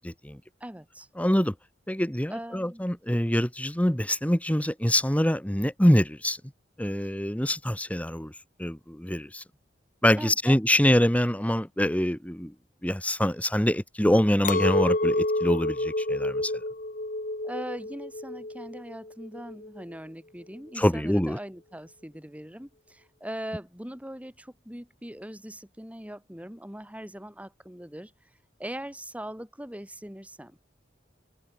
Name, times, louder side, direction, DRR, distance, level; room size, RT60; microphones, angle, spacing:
voice 1, 0.0-0.4 1.2-1.5 1.9-6.4 6.8-8.3 8.6-9.4 10.0-12.5 12.8-16.6 20.8-21.4, equal, 10° left, 1.9 m, -25 dB
voice 2, 0.6-1.1 2.3-2.8 10.2-10.6 17.4-28.3 28.6-30.6, right 1 dB, 10° right, 4.4 m, -40 dB
Chink clink, 14.4-19.8, left 2 dB, 45° left, 5.2 m, -29 dB
head